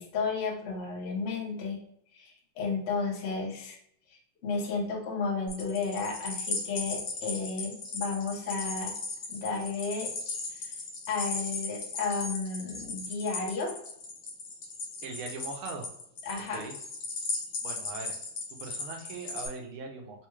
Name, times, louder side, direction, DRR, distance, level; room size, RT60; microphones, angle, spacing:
voice 1, 0.0-1.8 2.1-3.8 4.4-8.9 9.3-10.1 10.6-10.7 11.1-13.8 16.2-16.6, left 4 dB, 75° left, -1 dB, 0.5 m, -33 dB
sound 1, 5.5-19.5, left 3 dB, 60° left, 1.0 m, -37 dB
voice 2, 15.0-15.9 16.5-16.8 17.6-18.1 18.5-20.3, right 4 dB, 80° right, 3 dB, 1.6 m, -40 dB
4.0 x 2.3 x 3.0 m, 0.71 s
omnidirectional pair, 2.3 m